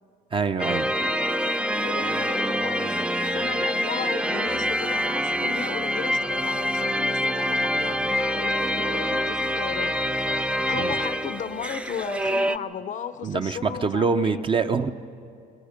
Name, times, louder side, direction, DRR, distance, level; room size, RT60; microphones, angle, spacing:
voice 1, 0.3-1.0 10.7-10.9 13.2-14.9, right 5 dB, 30° right, 0.8 m, -25 dB
sound 1, 0.6-12.6, equal, 5° right, 0.5 m, -26 dB
voice 2, 1.8-9.9 10.3-14.4, left 8 dB, 50° left, 0.7 m, -35 dB
28.0 x 23.0 x 5.2 m
cardioid pair, 110°, 17 cm